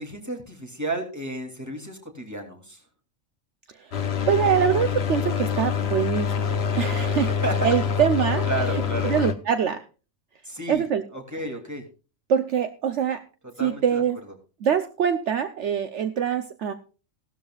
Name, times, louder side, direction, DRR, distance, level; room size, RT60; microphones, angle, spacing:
voice 1, 0.0-2.8 7.4-7.5 8.4-9.1 10.4-10.8 11.1-11.8 13.6-14.0, right 2 dB, 10° right, 3 dB, 2.7 m, -32 dB
sound 1, 3.9-9.3, left 7 dB, 55° left, 1.3 m, -26 dB
voice 2, 4.3-7.3 7.6-9.8 10.7-11.0 11.3-11.4 12.3-13.2 13.6-14.2 14.6-16.7, right 8 dB, 65° right, 9 dB, 1.1 m, -24 dB
16.5 x 12.5 x 2.4 m, 0.34 s
omnidirectional pair, 1.4 m